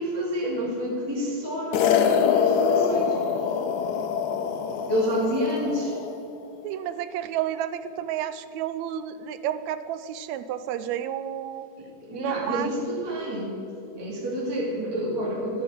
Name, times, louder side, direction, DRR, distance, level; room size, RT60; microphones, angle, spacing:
voice 1, 0.0-3.2 4.9-6.0 11.8-13.6 14.0-15.6, equal, 10° right, -5 dB, 2.1 m, -29 dB
sound 1, 1.7-6.2, left 7 dB, 75° left, 2.2 m, -24 dB
voice 2, 6.6-11.7 12.1-12.7, right 10 dB, 80° right, 13 dB, 1.8 m, -31 dB
14.0 x 7.7 x 7.7 m, 2.7 s
omnidirectional pair, 3.4 m